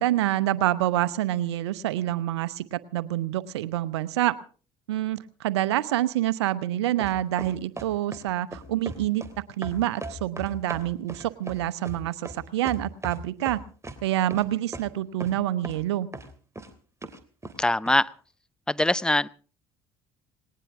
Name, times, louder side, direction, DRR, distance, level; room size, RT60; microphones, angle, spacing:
voice 1, 0.0-4.4 4.9-9.2 9.6-13.6 14.0-16.1, right 14 dB, 85° right, 15 dB, 0.9 m, -27 dB
sound 1, 7.0-8.2 8.5-9.3 9.6-13.2 13.5-14.0 14.3-14.5 14.7-14.8 15.2-15.4 15.6-15.8 16.1-16.7 17.0-17.6 17.9-18.0, right 2 dB, 20° right, 3.1 m, -38 dB
voice 2, 17.6-18.1 18.7-19.3, left 1 dB, 5° left, 18 dB, 0.7 m, -22 dB
19.5 x 18.5 x 3.6 m, 0.38 s
hypercardioid pair, 65°, 14 cm